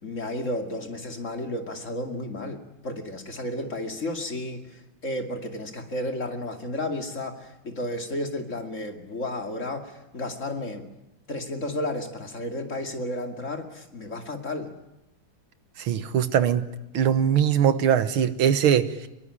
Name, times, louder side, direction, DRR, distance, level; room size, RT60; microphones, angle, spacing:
voice 1, 0.0-10.9 11.3-14.7, left 1 dB, 35° left, 4 dB, 2.8 m, -32 dB
voice 2, 15.8-16.6 16.9-19.1, right 9 dB, 85° right, 12 dB, 2.1 m, -21 dB
24.0 x 22.0 x 9.9 m, 0.92 s
omnidirectional pair, 2.2 m